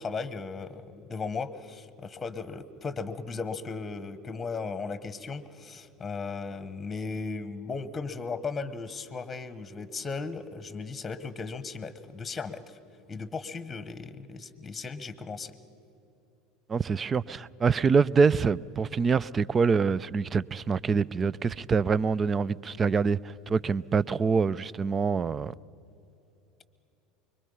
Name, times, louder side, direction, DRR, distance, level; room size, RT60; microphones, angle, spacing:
voice 1, 0.0-12.8 13.1-15.5, left 4 dB, 20° left, 1.1 m, -36 dB
voice 2, 16.7-23.2 23.5-25.5, right 5 dB, 25° right, 0.4 m, -25 dB
25.0 x 22.5 x 5.6 m
hypercardioid pair, 75°, 0 cm